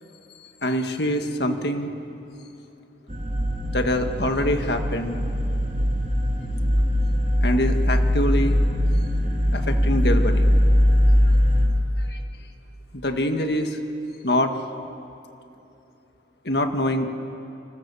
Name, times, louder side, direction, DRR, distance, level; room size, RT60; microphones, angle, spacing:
voice 1, 0.6-1.9 3.7-5.2 7.4-8.6 9.5-10.5 12.0-12.2 12.9-13.8 14.2-14.5 16.4-17.1, left 1 dB, 60° left, 5 dB, 1.8 m, -24 dB
sound 1, 3.1-11.7, equal, 40° right, 2.8 m, -21 dB
29.0 x 25.5 x 7.1 m, 2.8 s
head